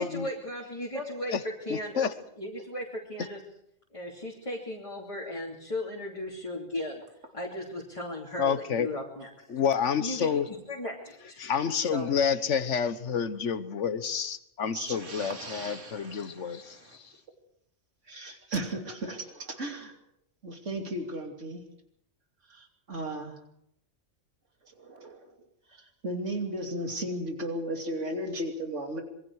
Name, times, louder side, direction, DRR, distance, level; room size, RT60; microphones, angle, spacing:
voice 1, 0.0-1.3 1.6-2.1 2.4-3.4 3.9-7.0 7.3-9.3 10.0-10.3 10.7-11.5 11.9-12.1, left 1 dB, 25° left, -3 dB, 3.1 m, -36 dB
voice 2, 1.7-2.1 8.4-8.9 9.5-10.5 11.4-17.1, left 7 dB, 70° left, 12 dB, 1.5 m, -29 dB
voice 3, 14.7-17.0 18.1-19.9 20.4-21.6 22.5-23.4 24.6-29.0, right 1 dB, 75° right, 3 dB, 3.1 m, -36 dB
26.5 x 22.5 x 4.8 m, 0.74 s
omnidirectional pair, 1.3 m